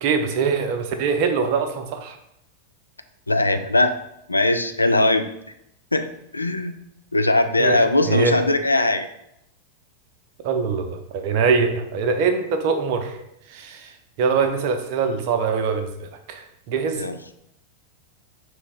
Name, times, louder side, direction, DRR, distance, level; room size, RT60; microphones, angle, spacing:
voice 1, 0.0-2.2 7.6-8.4 10.4-13.2 13.5-13.9 14.2-17.1, right 5 dB, 45° right, 6 dB, 0.6 m, -23 dB
voice 2, 3.3-3.9 4.3-5.3 5.9-6.1 6.3-6.7 7.1-9.1 16.9-17.2, left 2 dB, 80° left, 8 dB, 0.3 m, -20 dB
4.8 x 3.2 x 3.4 m, 0.79 s
figure-of-eight pair, 90°, 0 cm